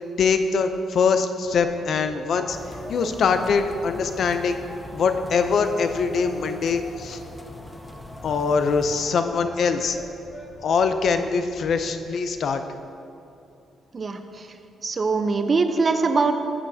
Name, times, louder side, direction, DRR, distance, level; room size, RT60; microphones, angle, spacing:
voice 1, 0.2-2.6 2.9-4.6 4.9-7.2 8.2-10.0 10.6-12.6, left 5 dB, 60° left, 8 dB, 0.6 m, -23 dB
sound 1, 1.4-12.2, left 1 dB, 5° right, 1.1 m, -43 dB
sound 2, 2.5-9.1, left 1 dB, 15° left, 0.6 m, -42 dB
voice 2, 13.9-14.5 14.8-16.3, right 4 dB, 35° right, 7 dB, 0.7 m, -22 dB
14.5 x 8.6 x 2.8 m, 2.6 s
cardioid pair, 90°, 0 cm